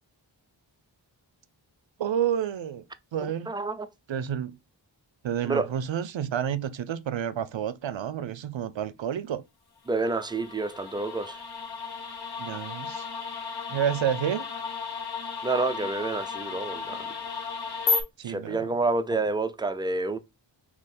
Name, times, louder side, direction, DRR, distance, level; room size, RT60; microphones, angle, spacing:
voice 1, 2.0-2.8 3.1-3.5 4.1-4.5 5.2-9.4 12.4-13.1 13.7-14.4 18.2-18.6, right 9 dB, 70° right, 0.6 m, -29 dB
voice 2, 3.2-3.9 5.4-5.7 9.9-11.4 15.4-17.1 18.2-20.2, right 3 dB, 10° right, 0.4 m, -29 dB
sound 1, 9.9-18.0, left 5 dB, 55° left, 0.9 m, -34 dB
3.7 x 2.9 x 4.2 m
wide cardioid pair, 80°, 46 cm